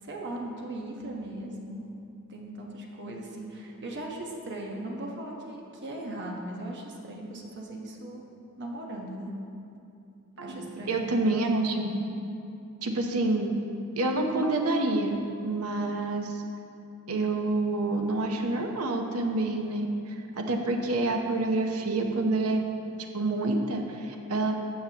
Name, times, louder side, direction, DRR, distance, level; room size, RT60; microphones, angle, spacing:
voice 1, 0.0-1.9 2.3-8.2 8.6-9.3 10.4-11.0, right 1 dB, 50° right, -1 dB, 1.1 m, -38 dB
voice 2, 10.4-12.0 12.8-13.5 14.0-15.2 15.4-16.4 17.1-22.6 23.1-24.6, right 2 dB, 75° right, 3 dB, 0.9 m, -27 dB
13.0 x 7.5 x 2.9 m, 2.7 s
head